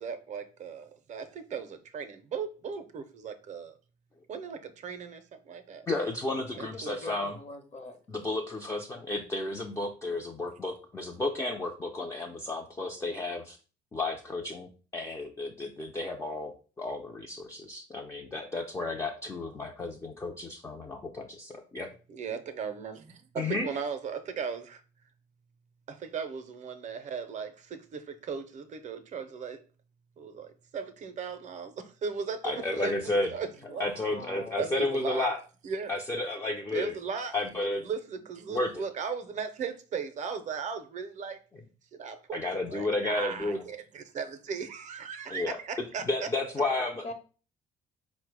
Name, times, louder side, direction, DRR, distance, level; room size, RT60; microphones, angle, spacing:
voice 1, 0.0-3.7 4.3-6.0 6.5-7.0 22.1-24.8 25.9-29.6 30.2-32.9 33.3-33.9 34.6-35.3 35.6-35.9 36.7-37.4 37.8-41.4 41.9-46.3, right 6 dB, 45° right, 0.5 m, -37 dB
voice 2, 5.9-7.3 8.1-13.6 13.9-21.9 23.4-23.7 32.4-33.3 33.8-35.4 35.9-36.9 37.3-37.8 38.5-38.8 42.3-43.6 45.3-45.6 46.0-47.0, left 2 dB, 15° left, 0.4 m, -32 dB
voice 3, 6.5-8.0 33.6-34.9 47.0-47.1, left 2 dB, 40° left, 0.9 m, -44 dB
4.4 x 2.1 x 4.6 m
cardioid pair, 110°, 17 cm